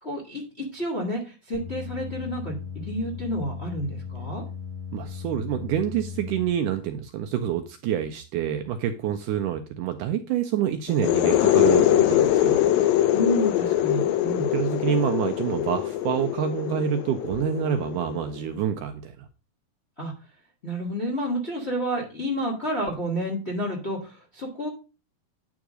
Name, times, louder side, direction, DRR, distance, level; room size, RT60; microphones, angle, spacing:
voice 1, 0.0-4.4 13.1-14.5 20.0-20.1 20.6-24.7, equal, 35° left, -2 dB, 0.9 m, -30 dB
sound 1, 1.5-6.4, left 6 dB, 60° left, 5.5 m, -37 dB
voice 2, 4.9-12.6 14.5-19.1, right 9 dB, 80° right, 7 dB, 1.9 m, -27 dB
sound 2, 10.9-18.4, left 12 dB, 80° left, 2.4 m, -23 dB
9.7 x 3.7 x 6.1 m, 0.33 s
omnidirectional pair, 4.2 m